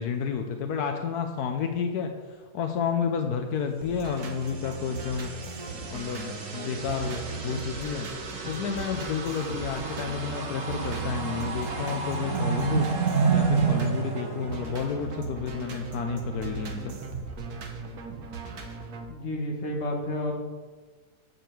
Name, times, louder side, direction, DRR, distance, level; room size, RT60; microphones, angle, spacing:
voice 1, 0.0-2.1 2.5-5.3 5.9-8.1 8.4-12.9 13.3-17.0, left 6 dB, 80° left, 5 dB, 1.2 m, -30 dB
sound 1, 3.8-19.0, right 5 dB, 75° right, 1.6 m, -38 dB
sound 2, 4.4-15.0, right 5 dB, 55° right, 1.5 m, -31 dB
voice 2, 19.1-20.3, left 1 dB, 45° left, 0 dB, 1.8 m, -30 dB
6.8 x 6.6 x 7.6 m, 1.4 s
omnidirectional pair, 1.6 m